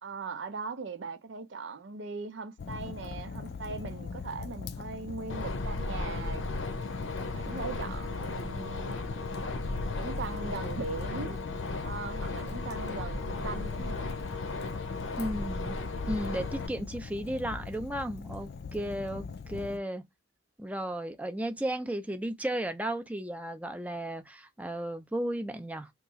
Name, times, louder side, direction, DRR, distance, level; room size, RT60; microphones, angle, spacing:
voice 1, 0.0-6.4 7.3-9.0 9.9-11.4 11.8-14.1, right 4 dB, 65° right, 0.5 m, -39 dB
Fire, 2.6-19.8, left 5 dB, 55° left, 0.3 m, -42 dB
sound 1, 5.3-16.7, left 2 dB, 80° left, 0.7 m, -35 dB
voice 2, 15.2-15.8 16.1-20.0 20.6-25.9, right 1 dB, 5° right, 0.4 m, -34 dB
2.9 x 2.4 x 3.7 m
head